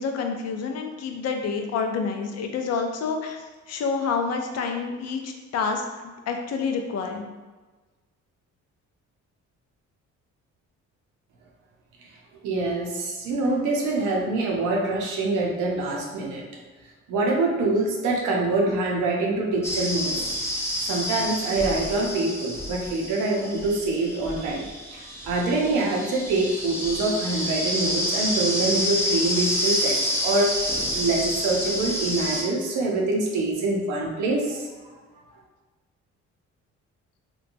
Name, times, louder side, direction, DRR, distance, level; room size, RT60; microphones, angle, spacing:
voice 1, 0.0-7.3, left 5 dB, 55° left, 4 dB, 0.5 m, -28 dB
voice 2, 12.4-16.4 17.1-20.3 20.8-30.5 30.9-34.7, right 2 dB, 90° right, -1 dB, 0.6 m, -25 dB
sound 1, 19.6-32.4, equal, 10° left, 0.6 m, -28 dB
2.9 x 2.2 x 2.5 m, 1.3 s
cardioid pair, 90°, 30 cm